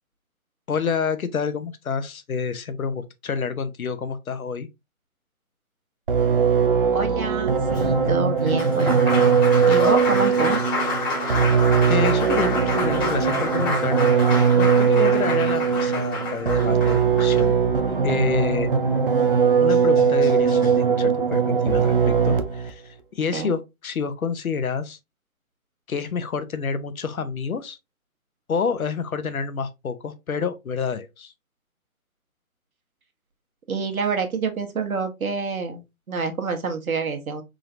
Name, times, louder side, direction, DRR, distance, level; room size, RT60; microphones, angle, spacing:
voice 1, 0.7-4.7 11.9-14.0 14.5-17.5 18.0-18.7 19.6-25.0 25.9-27.8 28.5-31.3, left 5 dB, 75° left, 0.8 m, -28 dB
sound 1, 6.1-22.7, right 6 dB, 40° right, 0.4 m, -20 dB
voice 2, 6.9-9.3 9.7-10.6 23.3-23.5 33.7-35.8 36.1-37.4, right 5 dB, 75° right, 1.3 m, -27 dB
Applause, 7.7-17.9 19.3-19.4 19.7-20.7, left 2 dB, 15° left, 1.0 m, -29 dB
3.7 x 3.3 x 2.6 m
figure-of-eight pair, 150°, 43 cm